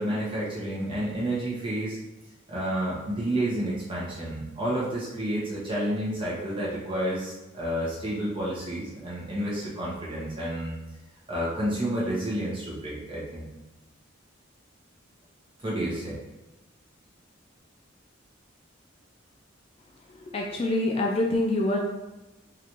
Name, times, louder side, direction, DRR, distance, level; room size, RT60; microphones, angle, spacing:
voice 1, 0.0-2.0 2.5-10.8 11.3-13.5 15.6-16.2, right 1 dB, 25° right, -7 dB, 1.2 m, -30 dB
voice 2, 20.3-21.8, left 2 dB, 30° left, 0 dB, 0.3 m, -25 dB
4.0 x 2.8 x 3.1 m, 1.1 s
head